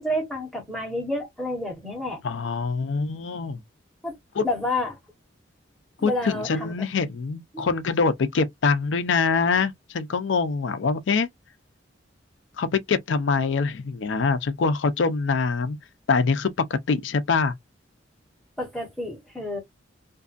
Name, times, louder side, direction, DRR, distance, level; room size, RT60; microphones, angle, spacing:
voice 1, 0.0-2.2 4.0-4.1 4.4-5.0 6.0-6.7 7.5-7.6 18.6-19.6, left 1 dB, ahead, 1.2 m, -29 dB
voice 2, 2.2-3.6 4.4-4.5 6.0-11.3 12.6-15.8 16.1-17.5, left 4 dB, 70° left, 0.5 m, -24 dB
2.6 x 2.4 x 2.4 m
head